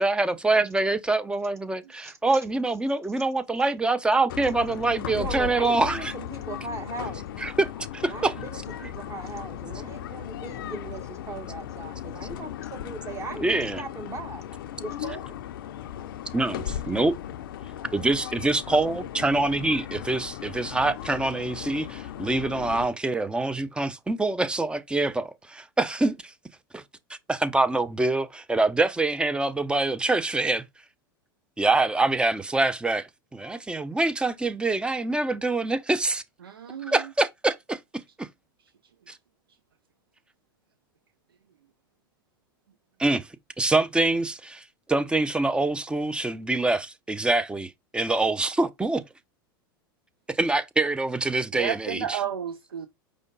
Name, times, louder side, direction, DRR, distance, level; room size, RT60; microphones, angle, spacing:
voice 1, 0.0-6.1 7.4-8.3 13.4-13.8 16.3-17.1 17.9-26.3 26.7-26.8 27.1-30.6 31.6-36.2 36.9-37.8 38.2-38.3 39.1-39.2 43.0-43.3 43.6-49.0 50.3-52.2, right 2 dB, 10° right, 0.5 m, -25 dB
sound 1, 4.3-22.9, left 11 dB, 70° left, 0.5 m, -37 dB
voice 2, 5.1-7.2 8.1-14.4 14.8-15.4, right 3 dB, 25° right, 1.2 m, -38 dB
voice 3, 36.4-36.9 51.5-52.9, right 8 dB, 90° right, 0.5 m, -32 dB
5.0 x 2.2 x 3.8 m
hypercardioid pair, 95°, 12 cm